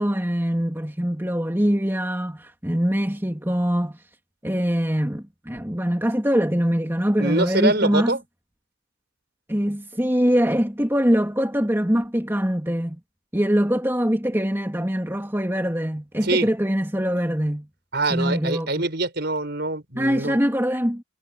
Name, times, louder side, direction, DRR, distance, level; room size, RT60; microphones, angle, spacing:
voice 1, 0.0-4.0 4.4-8.2 9.5-13.0 13.3-17.7 18.1-18.8 20.0-21.0, equal, 10° right, 2.9 m, -23 dB
voice 2, 7.2-8.2 16.2-16.5 17.9-20.4, right 2 dB, 50° right, 6.1 m, -24 dB
head